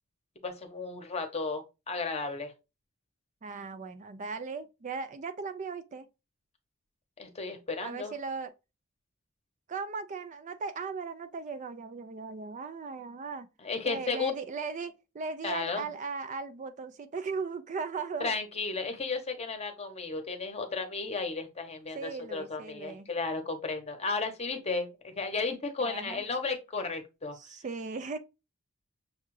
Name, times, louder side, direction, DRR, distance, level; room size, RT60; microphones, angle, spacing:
voice 1, 0.4-2.5 7.2-8.1 13.6-14.3 15.4-15.9 18.2-27.4, left 4 dB, 30° left, 0.9 m, -34 dB
voice 2, 3.4-6.1 7.8-8.5 9.7-13.5 13.8-18.3 21.9-23.1 25.8-26.2 27.3-28.2, right 4 dB, 35° right, 0.4 m, -37 dB
6.5 x 2.4 x 3.1 m
head